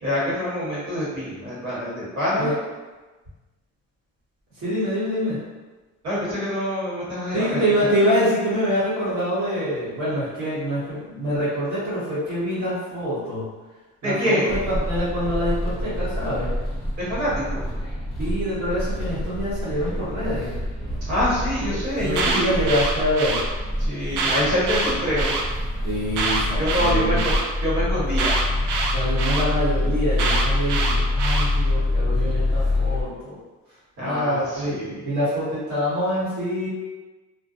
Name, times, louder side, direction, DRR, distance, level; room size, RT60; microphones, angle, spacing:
voice 1, 0.0-2.5 6.0-7.6 14.0-14.5 17.0-17.7 21.0-22.6 23.8-25.3 26.6-27.3 27.6-28.7 34.0-35.0, equal, 60° right, -9 dB, 1.5 m, -25 dB
voice 2, 4.6-5.4 7.3-13.4 14.0-16.5 18.2-20.6 21.6-23.4 25.8-27.2 28.9-33.4 34.0-34.7 35.0-36.7, equal, 45° right, -13 dB, 1.1 m, -25 dB
sound 1, 14.5-33.0, left 1 dB, ahead, 0.6 m, -26 dB
Alarm, 22.0-23.4 24.1-25.4 26.1-27.4 28.2-29.4 30.2-31.5, right 3 dB, 80° right, 0.5 m, -25 dB
2.6 x 2.1 x 2.5 m, 1.2 s
cardioid pair, 145°, 30 cm